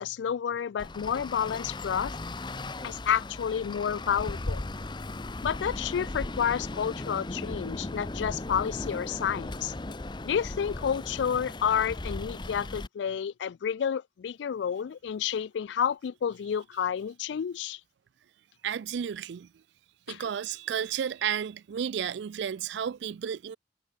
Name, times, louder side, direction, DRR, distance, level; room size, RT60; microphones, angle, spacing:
voice 1, 0.0-2.2 2.8-4.6 5.4-9.7 10.2-17.8 20.1-20.3, left 8 dB, 75° left, 0.3 m, -30 dB
Traffic noise roadway noise, 0.8-12.9, left 2 dB, 25° left, 0.7 m, -37 dB
voice 2, 18.6-19.5 20.1-23.6, right 8 dB, 70° right, 0.3 m, -32 dB
head